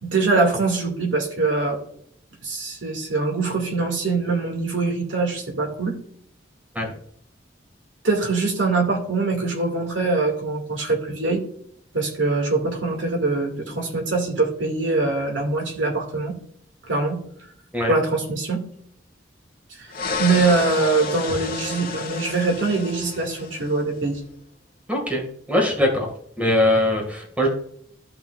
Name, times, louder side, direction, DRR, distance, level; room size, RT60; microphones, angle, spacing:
voice 1, 0.0-1.8 2.4-6.0 8.0-11.4 11.9-16.3 16.9-17.2 17.9-18.6 19.8-19.9 20.2-24.2, right 3 dB, 85° right, 1 dB, 2.4 m, -23 dB
sound 1, 19.9-23.8, left 4 dB, 50° left, 1.6 m, -30 dB
voice 2, 24.9-26.1 26.4-27.5, left 1 dB, 5° right, 0 dB, 2.2 m, -21 dB
13.5 x 5.9 x 2.6 m, 0.65 s
head